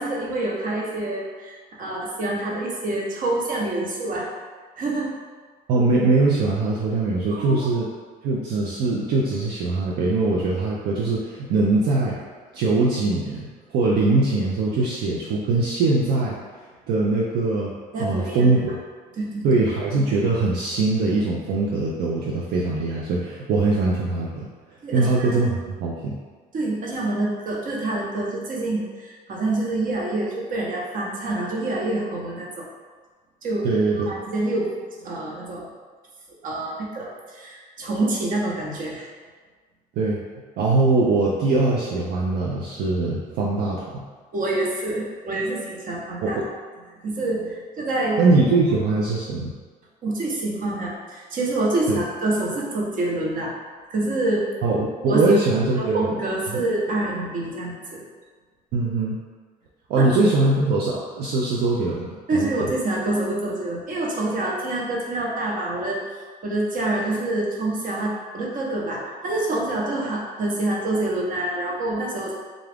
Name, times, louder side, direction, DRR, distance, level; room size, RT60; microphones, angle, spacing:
voice 1, 0.0-4.3 4.8-5.1 7.3-7.7 17.9-18.5 19.2-19.5 24.8-25.4 26.5-32.7 33.4-33.7 33.9-34.7 35.0-35.7 36.4-39.1 44.3-46.4 47.0-48.2 50.0-53.5 53.9-54.5 55.1-55.4 55.8-58.0 60.0-60.1 62.3-72.4, right 2 dB, 50° right, -2 dB, 0.9 m, -26 dB
voice 2, 5.7-7.9 8.2-12.2 12.5-16.4 16.9-17.7 18.0-18.7 19.4-24.5 24.9-26.2 33.6-34.1 40.0-40.2 40.6-44.0 46.2-46.5 48.2-49.5 51.9-52.0 54.6-56.1 56.5-56.6 58.7-59.2 59.9-62.5, right 3 dB, 75° right, -4 dB, 0.5 m, -22 dB
3.8 x 2.4 x 3.4 m, 1.5 s
cardioid pair, 110°, 17 cm